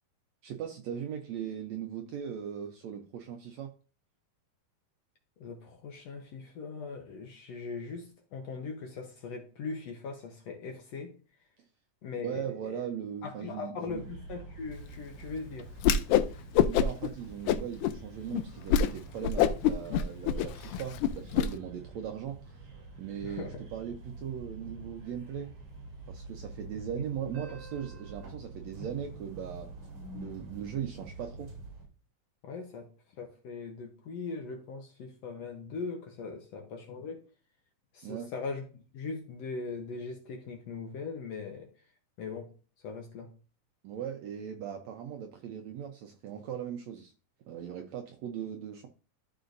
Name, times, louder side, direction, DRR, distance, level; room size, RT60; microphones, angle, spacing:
voice 1, 0.4-3.7 12.2-14.0 16.6-22.4 23.0-25.5 26.1-29.7 30.1-31.5 38.0-38.3 43.8-47.1 47.5-48.9, right 9 dB, 75° right, 4 dB, 1.7 m, -39 dB
voice 2, 5.4-11.1 12.0-12.8 13.2-15.7 23.2-23.6 32.4-32.9 33.2-37.2 37.9-41.7 42.2-42.5 42.8-43.3, left 4 dB, 65° left, 2 dB, 1.8 m, -40 dB
sound 1, 13.9-31.8, right 3 dB, 60° right, 4.0 m, -46 dB
Whoosh swoosh swish, 15.8-16.3 16.6-17.1 17.5-18.0 18.3-18.4 18.7-18.9 19.2-21.5, left 9 dB, 80° left, 2.1 m, -25 dB
13.0 x 4.9 x 2.6 m, 0.37 s
omnidirectional pair, 3.9 m